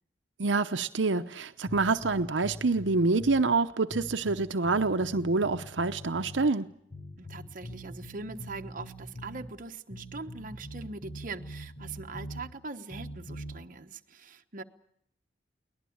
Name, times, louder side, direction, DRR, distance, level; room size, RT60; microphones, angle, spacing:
voice 1, 0.4-6.7, right 3 dB, 85° right, 0.8 m, -27 dB
sound 1, 1.7-3.5 3.9-6.5 6.9-9.5 9.9-12.5 12.9-13.6, equal, 55° left, 6.4 m, -43 dB
voice 2, 7.2-14.6, right 3 dB, 45° right, 1.1 m, -42 dB
23.0 x 19.5 x 8.7 m
head